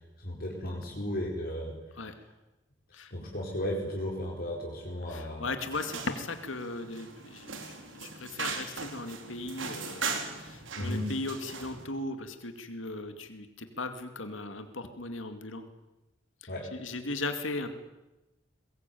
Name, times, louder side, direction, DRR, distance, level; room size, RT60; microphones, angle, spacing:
voice 1, 0.2-1.7 3.1-5.5 10.8-11.1 16.5-16.7, equal, 50° left, -1 dB, 4.8 m, -34 dB
voice 2, 5.0-15.6 16.4-17.7, left 2 dB, 85° left, 8 dB, 2.3 m, -37 dB
sound 1, 5.7-11.8, right 5 dB, 90° right, 4.3 m, -39 dB
23.0 x 21.5 x 9.3 m, 1.0 s
head